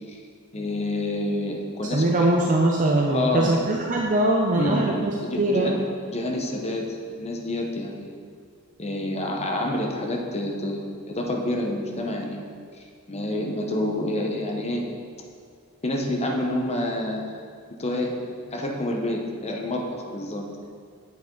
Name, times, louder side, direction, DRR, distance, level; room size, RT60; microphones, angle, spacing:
voice 1, 0.5-2.2 3.1-3.6 4.6-8.1 8.8-12.5 13.1-14.9 15.8-17.3 17.8-18.2 18.5-20.7, left 1 dB, 30° left, 1 dB, 0.9 m, -28 dB
voice 2, 1.9-5.1 5.4-5.8, right 1 dB, 35° right, -1 dB, 0.6 m, -21 dB
8.2 x 7.5 x 3.9 m, 2.1 s
head